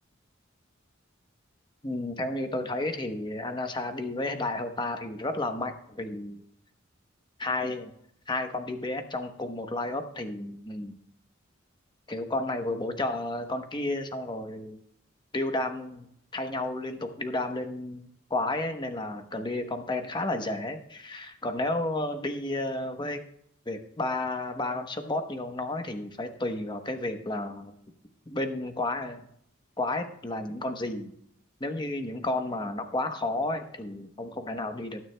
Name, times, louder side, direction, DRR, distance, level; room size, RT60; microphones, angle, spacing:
voice 1, 1.8-6.4 7.4-7.9 8.3-11.0 12.1-14.8 15.3-23.2 23.7-27.7 28.3-29.3 29.8-31.1 31.6-35.0, left 2 dB, 20° left, 6 dB, 1.0 m, -32 dB
19.5 x 9.4 x 2.2 m, 0.72 s
head